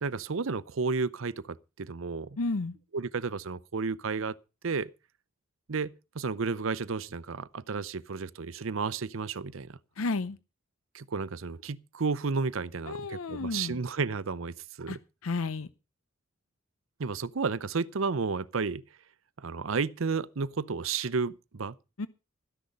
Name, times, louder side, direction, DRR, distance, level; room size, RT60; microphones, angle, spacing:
voice 1, 0.0-2.4 2.9-4.3 4.6-4.9 5.7-9.8 10.9-15.0 17.0-18.8 19.4-21.7, right 4 dB, 75° right, 0.7 m, -32 dB
voice 2, 2.4-2.8 10.0-10.4 12.8-13.8 14.9-15.7 22.0-22.1, left 3 dB, 90° left, 0.7 m, -32 dB
14.0 x 10.5 x 5.3 m
head